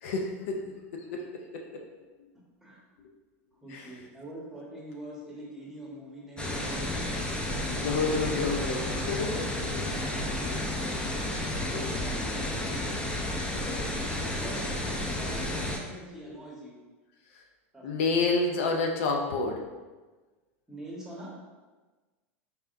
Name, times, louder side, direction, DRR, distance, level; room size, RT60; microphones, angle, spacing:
voice 1, 0.0-1.8 3.7-3.9 7.6-9.9 10.2-11.2 11.6-11.9 17.3-17.4 17.8-19.7, left 3 dB, 70° left, 1 dB, 0.6 m, -30 dB
voice 2, 3.6-7.1 9.5-9.8 11.6-16.8 17.7-17.8 20.7-21.3, right 1 dB, 5° right, -5 dB, 1.2 m, -45 dB
sound 1, 6.4-15.8, left 1 dB, 15° left, 0.6 m, -32 dB
4.2 x 3.3 x 2.5 m, 1.3 s
hypercardioid pair, 110°, 8 cm